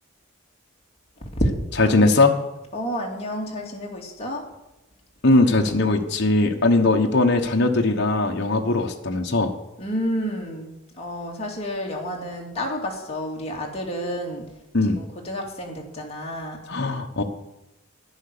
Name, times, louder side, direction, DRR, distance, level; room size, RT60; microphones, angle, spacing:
voice 1, 1.8-2.4 5.2-9.5 14.7-15.0 16.7-17.2, left 2 dB, 50° left, 2 dB, 1.2 m, -19 dB
voice 2, 2.7-4.5 9.8-14.5 14.9-16.6, equal, 30° left, -1 dB, 2.4 m, -30 dB
11.0 x 9.8 x 6.8 m, 0.94 s
head